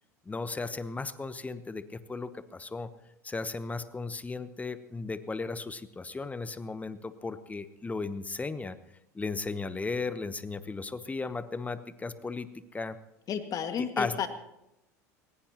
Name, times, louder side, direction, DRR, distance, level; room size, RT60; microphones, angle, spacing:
voice 1, 0.3-2.9 3.2-8.8 9.1-13.0 14.0-14.2, left 3 dB, 15° left, 13 dB, 1.0 m, -35 dB
voice 2, 13.3-14.3, left 7 dB, 40° left, 7 dB, 2.0 m, -32 dB
20.5 x 19.5 x 3.0 m, 0.86 s
hypercardioid pair, 80°, 9 cm